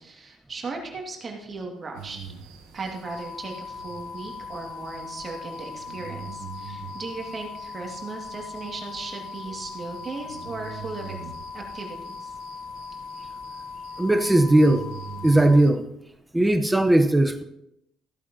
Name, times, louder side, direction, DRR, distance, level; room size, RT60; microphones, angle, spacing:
voice 1, 0.0-2.2 2.7-12.3, right 3 dB, 40° right, 1 dB, 2.2 m, -37 dB
sound 1, 1.9-15.7, right 7 dB, 80° right, 1.3 m, -44 dB
sound 2, 3.0-15.6, left 5 dB, 60° left, 1.9 m, -39 dB
voice 2, 14.0-14.8 15.2-15.8 16.3-17.4, right 1 dB, 10° right, 7 dB, 0.9 m, -18 dB
14.5 x 8.2 x 2.9 m, 0.82 s
supercardioid pair, 70°, 0 cm